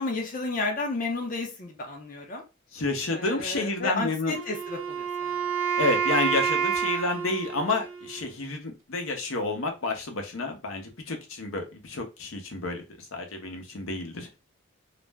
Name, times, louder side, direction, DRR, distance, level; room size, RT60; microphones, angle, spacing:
voice 1, 0.0-2.4 3.1-5.4, left 3 dB, 40° left, 2 dB, 0.6 m, -32 dB
voice 2, 2.7-4.3 5.8-12.8 13.1-14.4, left 3 dB, 80° left, 4 dB, 0.7 m, -30 dB
Wind instrument woodwind instrument, 4.3-8.4, right 7 dB, 65° right, 0.5 m, -29 dB
2.4 x 2.0 x 3.3 m, 0.28 s
head